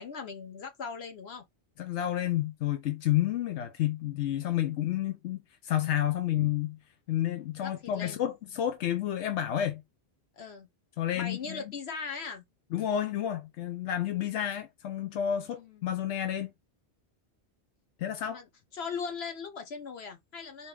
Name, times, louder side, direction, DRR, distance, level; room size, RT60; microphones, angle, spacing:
voice 1, 0.0-1.4 7.6-8.2 10.4-10.7 11.1-12.4 15.6-15.9 18.2-18.5 18.7-20.7, left 5 dB, 70° left, 1.3 m, -39 dB
voice 2, 1.8-6.8 7.1-9.8 11.0-11.7 12.7-16.5 18.0-18.4, left 11 dB, 85° left, 1.0 m, -30 dB
4.4 x 2.9 x 3.3 m
omnidirectional pair, 1.1 m